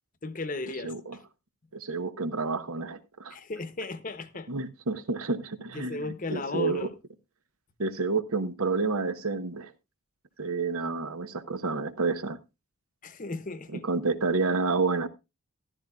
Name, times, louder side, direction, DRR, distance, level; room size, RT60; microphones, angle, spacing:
voice 1, 0.2-1.2 3.3-4.5 5.7-7.0 13.0-13.8, left 3 dB, 40° left, 0.8 m, -35 dB
voice 2, 0.8-1.2 1.7-3.4 4.5-6.9 7.8-9.7 10.4-12.4 13.7-15.1, right 4 dB, 80° right, 0.9 m, -29 dB
14.5 x 12.0 x 2.3 m
head